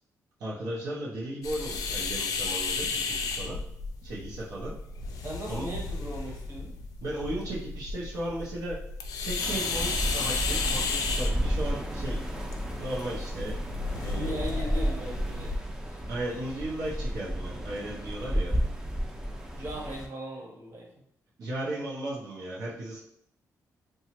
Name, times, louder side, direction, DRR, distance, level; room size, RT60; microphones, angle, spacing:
voice 1, 0.4-3.6 4.0-4.7 5.5-5.7 7.0-8.8 9.2-12.2 12.8-13.6 14.0-14.3 16.1-18.5 21.4-23.0, right 1 dB, 85° right, -6 dB, 0.7 m, -35 dB
sound 1, 1.4-15.6, left 4 dB, 90° left, 0.4 m, -34 dB
voice 2, 5.2-6.7 14.1-15.5 19.5-20.9, equal, 45° right, -3 dB, 1.0 m, -38 dB
sound 2, 9.4-20.1, equal, 10° right, 0.5 m, -32 dB
2.8 x 2.3 x 2.9 m, 0.75 s
cardioid pair, 95°, 6 cm